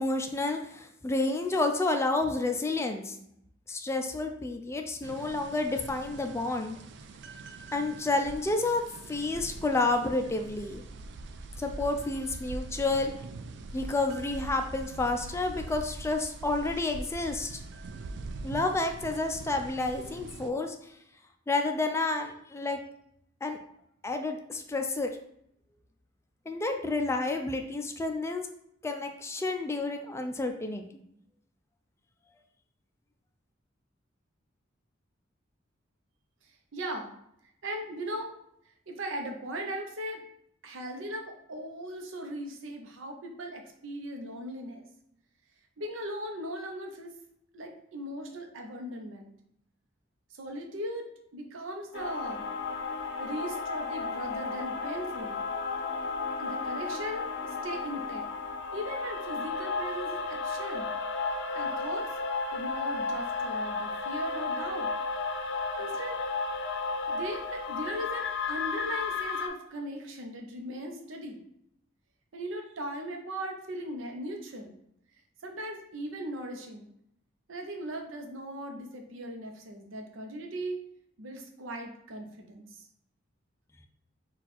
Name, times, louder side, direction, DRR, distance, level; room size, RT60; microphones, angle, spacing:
voice 1, 0.0-3.2 3.7-6.8 7.7-8.8 9.1-10.8 11.6-13.1 13.7-17.6 18.4-20.8 21.5-22.8 23.4-23.6 24.0-25.1 26.5-28.5 28.8-30.8, left 2 dB, 15° left, 5 dB, 0.3 m, -30 dB
sound 1, 5.0-20.5, right 2 dB, 60° right, 0.3 m, -43 dB
voice 2, 36.7-37.1 37.6-38.4 38.9-40.2 40.6-44.9 45.8-47.1 47.5-49.3 50.3-52.5 53.2-55.4 56.4-58.2 58.7-60.9 61.5-62.1 62.5-64.9 65.8-66.4 67.1-71.4 72.3-74.7 75.4-76.9 77.5-80.8 81.2-82.9, right 1 dB, 85° right, 3 dB, 0.7 m, -38 dB
sound 2, 51.9-69.5, left 4 dB, 60° left, 0.6 m, -33 dB
4.2 x 2.4 x 4.2 m, 0.74 s
head